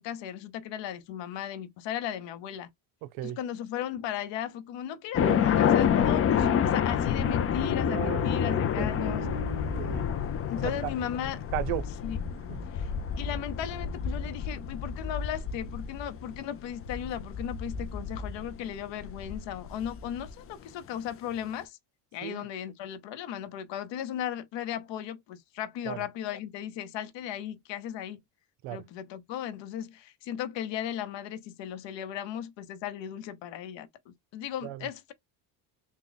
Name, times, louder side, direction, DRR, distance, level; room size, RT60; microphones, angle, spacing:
voice 1, 0.0-2.7 3.2-5.2 5.6-9.3 10.5-11.5 12.0-12.2 12.7-12.9 13.2-21.8 22.1-28.2 28.7-35.1, left 10 dB, 65° left, 0.9 m, -36 dB
voice 2, 3.0-3.4 5.2-5.4 7.8-10.1 10.6-10.9 11.5-11.9 12.5-12.6 22.2-22.5 25.8-26.0 28.6-28.8 34.6-34.9, right 12 dB, 75° right, 0.8 m, -36 dB
sound 1, 5.1-20.3, left 8 dB, 30° left, 0.5 m, -29 dB
3.6 x 2.3 x 3.9 m
cardioid pair, 125°, 47 cm